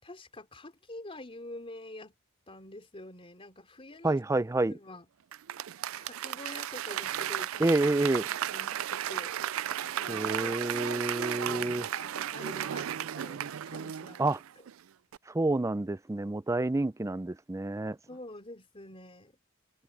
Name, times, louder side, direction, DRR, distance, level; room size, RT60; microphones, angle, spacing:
voice 1, 0.0-2.1 2.5-4.2 4.6-5.1 6.0-7.7 8.2-9.4 9.9-14.4 18.1-19.4, left 1 dB, 30° left, 3.7 m, -47 dB
voice 2, 4.0-4.8 7.6-8.3 10.1-11.8 14.2-14.4 15.3-18.0, right 2 dB, 15° right, 0.4 m, -28 dB
Applause / Crowd, 5.3-14.7 15.1-15.2, right 10 dB, 85° right, 0.4 m, -35 dB
open air
head